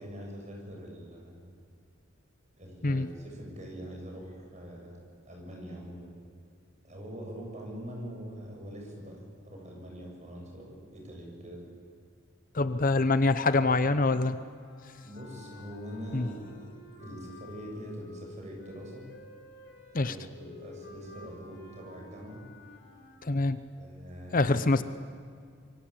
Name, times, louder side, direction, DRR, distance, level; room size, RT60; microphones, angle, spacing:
voice 1, 0.0-1.4 2.6-6.2 6.8-11.6 14.9-16.7 17.0-19.1 19.9-22.4 23.8-24.5, equal, 35° right, 0 dB, 7.9 m, -43 dB
voice 2, 12.5-14.4 16.1-16.3 19.9-20.1 23.2-23.6 24.3-24.8, left 3 dB, 40° left, 13 dB, 0.9 m, -25 dB
Clarinet - C natural minor - bad-tempo-legato, 14.5-23.2, left 2 dB, 60° left, 5.6 m, -50 dB
26.5 x 23.5 x 8.8 m, 2.2 s
head